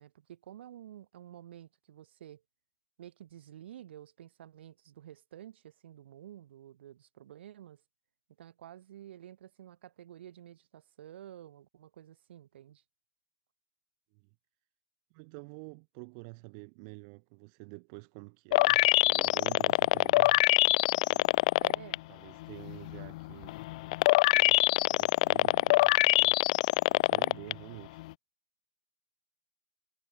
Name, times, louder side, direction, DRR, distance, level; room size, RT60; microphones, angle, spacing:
voice 1, 0.0-2.4 3.0-7.8 8.4-12.8 21.6-22.0 25.5-25.7, right 11 dB, 65° right, 3.4 m, -50 dB
voice 2, 15.1-20.5 21.0-21.3 22.1-23.6 24.3-24.6 24.9-26.4 26.9-28.0, right 37 dB, 30° right, 1.9 m, -48 dB
sound 1, 18.5-22.0 22.4-27.5 28.0-28.1, left 20 dB, 35° left, 0.5 m, -24 dB
supercardioid pair, 175°, 6 cm